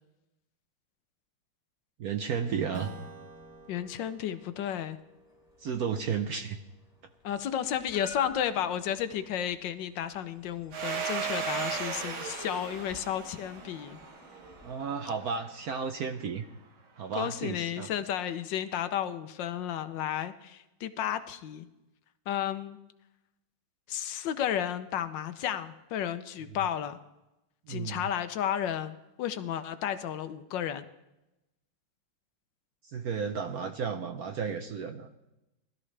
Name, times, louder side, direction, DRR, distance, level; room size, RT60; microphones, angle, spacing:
voice 1, 2.0-2.9 5.6-6.6 14.6-16.5 17.0-17.9 27.7-28.0 32.8-35.1, right 6 dB, 65° right, 6 dB, 1.0 m, -33 dB
Strum, 2.7-7.7, right 4 dB, 50° right, 1.7 m, -49 dB
sound 1, 3.0-15.2, left 2 dB, 15° left, 1.9 m, -54 dB
voice 2, 3.7-5.0 7.2-14.0 17.1-21.7 22.3-22.8 23.9-27.0 27.7-30.8, left 10 dB, 70° left, 11 dB, 1.3 m, -33 dB
Domestic sounds home sounds, 10.7-15.1, right 6 dB, 90° right, 2.3 m, -36 dB
19.5 x 13.0 x 3.3 m, 0.95 s
omnidirectional pair, 2.2 m